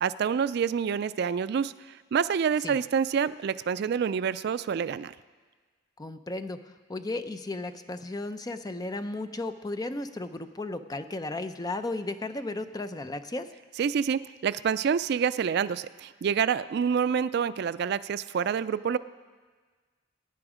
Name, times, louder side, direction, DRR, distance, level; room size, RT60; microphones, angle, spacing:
voice 1, 0.0-1.7 2.1-5.1 13.8-19.0, right 7 dB, 55° right, 15 dB, 0.3 m, -27 dB
voice 2, 6.0-6.6 6.9-13.5, left 2 dB, 20° left, 9 dB, 0.5 m, -34 dB
22.5 x 9.7 x 4.9 m, 1.5 s
head